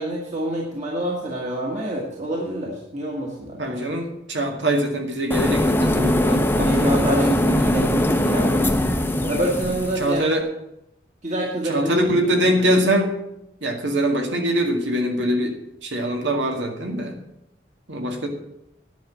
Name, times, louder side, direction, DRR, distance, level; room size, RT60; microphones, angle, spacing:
voice 1, 0.0-3.8 6.6-8.7 9.2-10.3 11.2-12.4, right 1 dB, 40° right, -2 dB, 1.8 m, -27 dB
voice 2, 3.6-7.1 7.4-7.8 10.0-10.5 11.6-13.1 13.6-15.6 15.8-17.2 17.9-18.3, right 1 dB, 90° right, 3 dB, 2.0 m, -23 dB
sound 1, 5.3-10.1, left 1 dB, 10° left, 0.7 m, -21 dB
10.5 x 5.9 x 8.6 m, 0.83 s
head